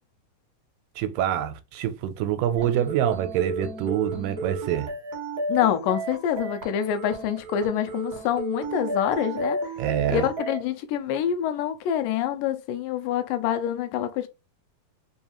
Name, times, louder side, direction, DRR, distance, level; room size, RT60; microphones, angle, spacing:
voice 1, 1.0-4.9 9.8-10.3, right 10 dB, 80° right, 2.2 m, -26 dB
sound 1, 2.6-10.6, right 2 dB, 60° right, 0.9 m, -33 dB
voice 2, 5.5-9.6 10.1-14.3, left 10 dB, 85° left, 2.1 m, -26 dB
5.2 x 2.4 x 2.9 m
omnidirectional pair, 3.9 m